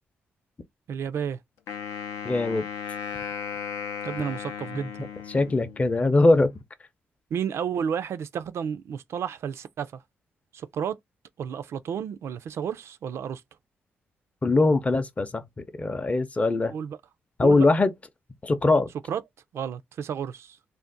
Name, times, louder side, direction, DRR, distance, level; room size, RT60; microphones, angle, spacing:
voice 1, 0.9-1.4 4.0-5.1 7.3-10.0 10.5-11.0 11.4-13.4 16.7-17.0 17.4-17.7 19.1-19.2 19.5-20.6, right 8 dB, 70° right, 0.3 m, -31 dB
Wind instrument woodwind instrument, 1.7-6.0, left 7 dB, 85° left, 0.5 m, -36 dB
voice 2, 2.2-2.6 5.3-6.5 14.4-16.7 17.4-17.9 18.4-18.9, left 2 dB, 30° left, 0.5 m, -21 dB
2.5 x 2.1 x 3.8 m
supercardioid pair, 60°, 5 cm